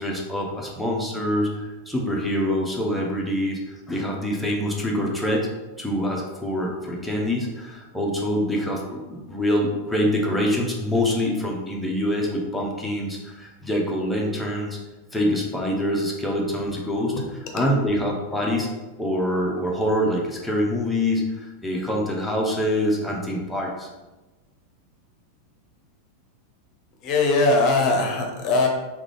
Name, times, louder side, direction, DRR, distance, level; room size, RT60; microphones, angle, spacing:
voice 1, 0.0-1.5 1.9-5.5 5.8-14.8 15.1-17.1 17.5-18.7 19.0-23.9, left 1 dB, 5° left, -2 dB, 0.8 m, -25 dB
voice 2, 27.0-28.7, left 3 dB, 35° left, 2 dB, 0.8 m, -20 dB
3.7 x 3.1 x 3.4 m, 1.1 s
figure-of-eight pair, 90°, 0 cm